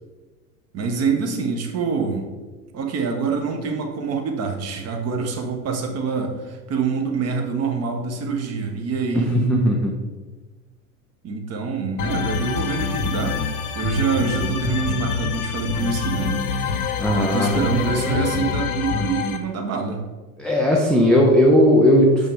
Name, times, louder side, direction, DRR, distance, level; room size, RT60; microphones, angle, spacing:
voice 1, 0.7-2.3 2.7-9.3 11.2-13.4 13.7-16.5 17.1-20.0, right 5 dB, 30° right, 3 dB, 1.1 m, -25 dB
voice 2, 9.1-9.9 14.2-14.3 17.0-17.6 18.0-18.3 20.4-22.3, equal, ahead, -2 dB, 0.4 m, -17 dB
sound 1, 12.0-19.4, left 5 dB, 70° left, 0.8 m, -26 dB
5.9 x 5.4 x 3.6 m, 1.3 s
figure-of-eight pair, 75°, 47 cm